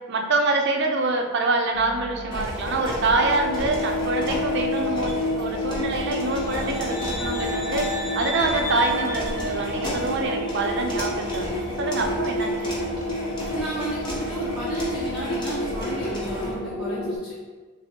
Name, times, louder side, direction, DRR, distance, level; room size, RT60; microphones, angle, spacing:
voice 1, 0.1-12.7, right 3 dB, 55° right, 2 dB, 0.5 m, -26 dB
sound 1, 1.7-17.2, left 1 dB, 80° left, 0.6 m, -30 dB
sound 2, 2.3-16.5, equal, 20° left, 0.9 m, -34 dB
sound 3, 6.2-10.2, equal, 50° left, 1.1 m, -33 dB
voice 2, 13.5-17.3, right 1 dB, 5° right, -9 dB, 0.6 m, -33 dB
6.1 x 2.0 x 3.6 m, 1.4 s
head